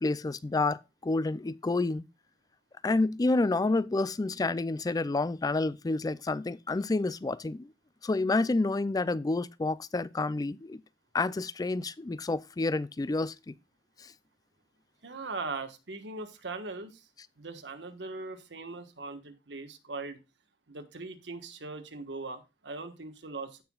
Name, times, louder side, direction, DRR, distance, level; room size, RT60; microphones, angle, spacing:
voice 1, 0.0-2.0 2.8-7.7 8.0-10.8 11.1-13.5, left 2 dB, 20° left, 0.4 m, -29 dB
voice 2, 15.0-17.1 17.4-20.2 20.7-23.6, right 3 dB, 90° right, 1.3 m, -40 dB
15.5 x 5.8 x 2.3 m
head